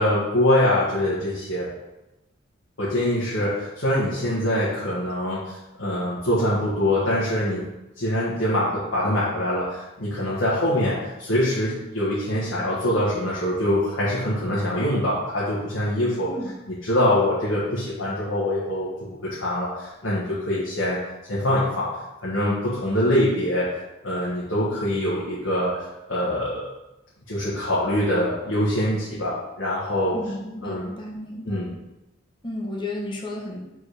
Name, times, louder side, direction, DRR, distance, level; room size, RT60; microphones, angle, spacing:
voice 1, 0.0-1.7 2.8-7.7 8.0-16.3 16.8-18.9 19.2-21.0 21.3-21.9 22.2-23.7 24.0-25.7 26.1-26.6 27.3-30.2 30.6-30.9 31.5-31.7, left 1 dB, 80° left, -9 dB, 1.6 m, -24 dB
voice 2, 30.1-31.7 32.4-33.6, left 1 dB, 25° left, -1 dB, 1.0 m, -33 dB
4.8 x 4.2 x 5.0 m, 0.98 s
head